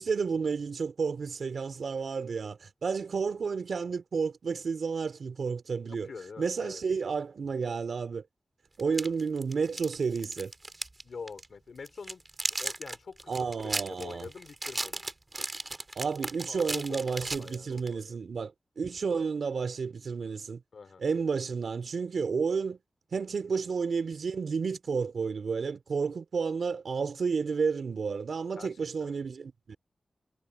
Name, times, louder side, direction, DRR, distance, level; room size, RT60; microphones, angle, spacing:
voice 1, 0.0-6.1 6.4-8.2 8.8-10.5 13.3-14.3 16.0-20.6 21.0-22.8 23.1-29.8, right 5 dB, 75° right, 3.7 m, -31 dB
voice 2, 6.0-6.8 11.0-12.2 12.6-13.4 13.6-15.0 16.5-18.2 20.7-21.0 28.6-28.7 29.0-29.2, left 5 dB, 70° left, 3.4 m, -45 dB
sound 1, 8.8-11.0 11.3-11.5 11.8-17.9, right 2 dB, 25° right, 3.1 m, -36 dB
wide cardioid pair, 140°, 0 cm